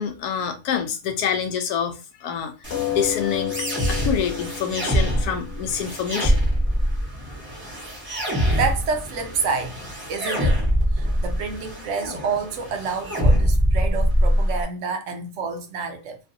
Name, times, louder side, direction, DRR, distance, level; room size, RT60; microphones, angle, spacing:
voice 1, 0.0-3.5 3.9-6.4, left 7 dB, 85° left, 1.1 m, -27 dB
sound 1, 2.6-14.6, equal, 10° right, 1.0 m, -24 dB
sound 2, 2.7-7.7 8.5-8.6 8.9-9.0, left 10 dB, 60° left, 0.7 m, -33 dB
voice 2, 8.5-10.6 10.9-16.2, right 5 dB, 65° right, 0.8 m, -28 dB
3.0 x 2.5 x 2.6 m
omnidirectional pair, 1.6 m